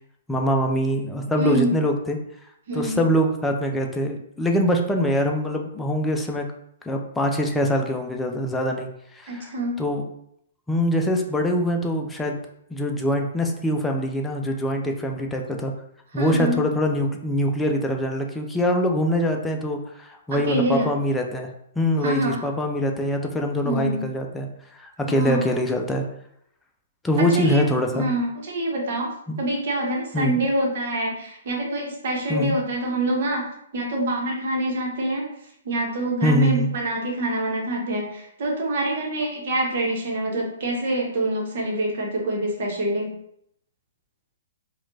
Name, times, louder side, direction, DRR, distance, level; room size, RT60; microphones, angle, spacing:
voice 1, 0.3-2.2 2.7-6.4 6.9-8.9 9.1-9.5 9.8-10.0 10.7-12.4 12.7-15.7 16.1-21.5 21.8-24.5 24.8-26.0 27.0-28.1 29.3-29.4 30.1-30.4 32.3-32.6 36.2-36.7, equal, 10° left, 2 dB, 0.5 m, -23 dB
voice 2, 1.4-1.8 2.7-3.0 9.3-9.8 16.1-16.6 20.3-20.9 22.0-22.4 23.6-24.0 25.1-25.5 27.2-27.6 27.9-29.1 29.4-33.4 33.7-35.2 35.6-43.1, right 1 dB, 60° right, -1 dB, 1.1 m, -26 dB
4.4 x 2.4 x 2.6 m, 0.74 s
hypercardioid pair, 125°, 0 cm